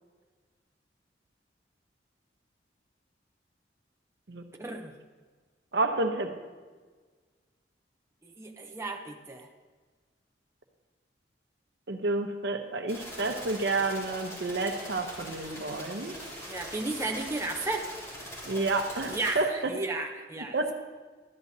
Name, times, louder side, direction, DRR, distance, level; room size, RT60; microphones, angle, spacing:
voice 1, 4.6-4.9 8.2-9.5 16.5-17.9 19.1-20.7, right 2 dB, 15° right, 2 dB, 0.6 m, -34 dB
voice 2, 5.7-6.3 11.9-16.2 18.5-19.7 20.4-20.7, right 3 dB, 70° right, 5 dB, 0.9 m, -30 dB
sound 1, 12.9-19.3, equal, 15° left, 2.8 m, -42 dB
13.0 x 10.5 x 2.7 m, 1.4 s
head